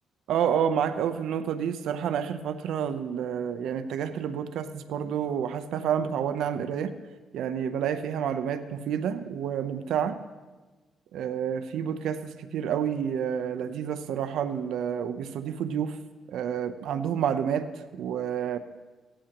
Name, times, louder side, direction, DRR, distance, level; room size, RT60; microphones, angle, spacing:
voice 1, 0.3-6.9 7.3-10.2 11.1-16.0 16.3-17.7 17.9-18.6, right 8 dB, 80° right, 11 dB, 0.7 m, -29 dB
18.5 x 14.0 x 3.0 m, 1.2 s
cardioid pair, 90°, 0 cm